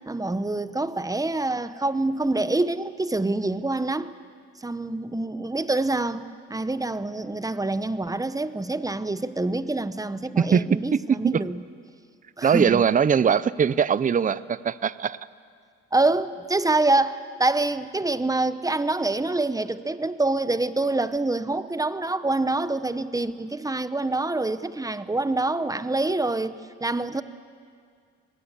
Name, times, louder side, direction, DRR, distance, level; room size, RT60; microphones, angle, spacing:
voice 1, 0.1-4.1 4.6-11.6 12.4-12.8 15.9-26.5 26.8-27.2, right 2 dB, 10° right, 13 dB, 0.9 m, -26 dB
voice 2, 10.4-11.4 12.4-15.2, right 7 dB, 25° right, 18 dB, 0.6 m, -21 dB
26.5 x 20.0 x 8.2 m, 2.1 s
cardioid pair, 90°, 30 cm